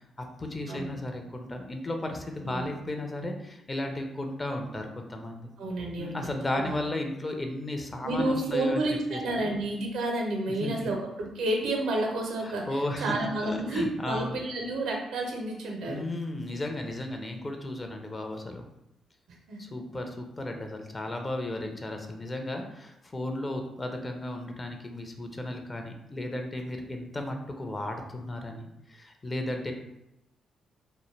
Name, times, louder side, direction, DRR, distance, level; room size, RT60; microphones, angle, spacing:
voice 1, 0.2-5.5 6.0-8.8 9.1-9.5 10.6-10.9 12.4-14.4 15.9-18.6 19.6-29.7, left 1 dB, 30° left, 4 dB, 0.5 m, -34 dB
voice 2, 5.6-6.2 6.5-6.8 8.0-16.0 19.5-19.6, right 2 dB, 70° right, 1 dB, 0.5 m, -30 dB
2.2 x 2.0 x 3.1 m, 0.85 s
hypercardioid pair, 40°, 0 cm